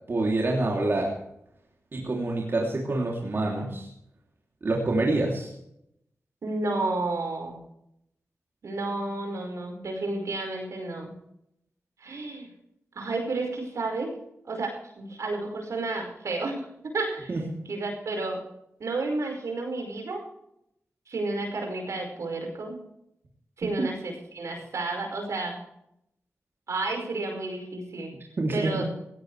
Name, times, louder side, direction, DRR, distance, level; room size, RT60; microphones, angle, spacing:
voice 1, 0.1-1.1 1.9-3.9 4.6-5.5 17.3-17.4 28.4-28.8, right 2 dB, 45° right, -2 dB, 3.1 m, -26 dB
voice 2, 6.4-7.6 8.6-11.1 12.0-12.5 13.0-14.1 14.5-17.4 17.7-18.4 18.8-20.2 21.1-22.8 23.6-25.6 26.7-28.1 28.5-28.9, right 2 dB, 75° right, 2 dB, 5.2 m, -31 dB
17.5 x 16.5 x 3.4 m, 0.77 s
wide cardioid pair, 120°, 5 cm